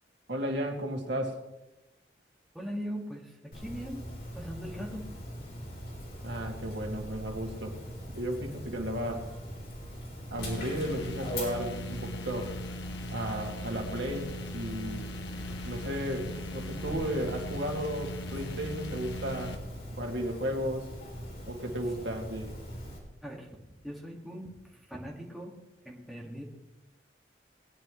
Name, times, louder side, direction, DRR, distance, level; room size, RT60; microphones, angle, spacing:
voice 1, 0.3-1.4 6.2-7.8 8.1-9.3 10.3-12.6 13.1-15.1 15.7-19.6 20.0-20.9 21.5-22.5, equal, 80° right, 1 dB, 2.3 m, -34 dB
voice 2, 2.5-4.1 4.3-5.1 23.2-24.5 24.9-25.5 25.9-26.4, equal, ahead, -3 dB, 2.0 m, -40 dB
Dog, 3.5-23.0, equal, 55° left, 4.0 m, -41 dB
sound 1, 10.4-19.6, left 1 dB, 90° left, 1.2 m, -40 dB
20.0 x 10.0 x 3.2 m, 0.97 s
head